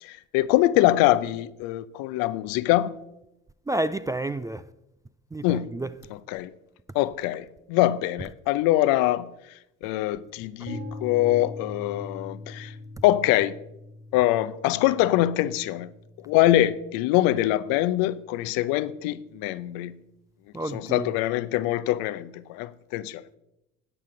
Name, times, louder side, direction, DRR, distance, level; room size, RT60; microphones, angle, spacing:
voice 1, 0.0-2.9 5.4-5.7 6.3-6.5 6.9-9.3 9.8-12.7 13.0-13.6 14.1-15.9 16.3-20.0 20.7-23.2, left 15 dB, 65° left, 0.7 m, -24 dB
voice 2, 3.7-4.6 5.3-5.9 20.5-21.2, right 1 dB, 10° right, 0.4 m, -30 dB
sound 1, 10.7-18.5, left 1 dB, 40° right, 4.1 m, -42 dB
13.5 x 9.7 x 3.8 m
hypercardioid pair, 55°, 37 cm